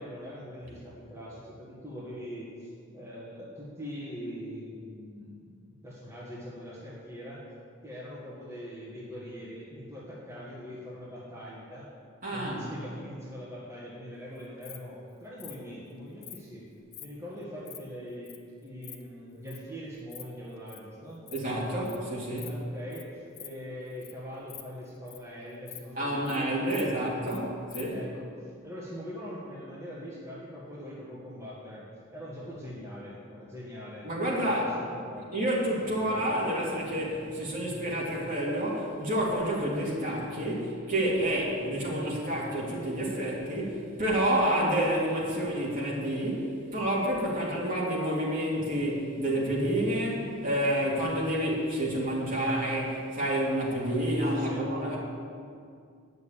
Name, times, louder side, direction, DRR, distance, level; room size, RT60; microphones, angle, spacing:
voice 1, 0.0-5.6 5.8-7.4 7.8-11.9 12.3-16.7 17.0-21.2 22.4-27.0 27.9-35.4 35.9-36.4 54.3-54.6, equal, 15° right, -8 dB, 1.6 m, -42 dB
voice 2, 12.2-12.7 21.3-22.5 26.0-27.5 27.7-28.0 34.0-34.6 35.3-55.0, right 1 dB, 40° right, -5 dB, 2.7 m, -29 dB
Insect, 14.4-14.8 15.4-15.6 16.2-16.4 16.9-17.1 17.4-17.8 18.3-18.4 18.6-19.0 19.5-19.6 20.0-20.2 20.5-20.8 21.1-21.4 21.6-22.0 22.4-22.6 22.9-23.0 23.3-23.5 23.9-24.1 24.4-25.3 25.7-25.8 26.1-26.4 26.7-27.4 27.7-27.8, left 11 dB, 50° left, 0.8 m, -45 dB
9.4 x 6.8 x 8.7 m, 2.3 s
head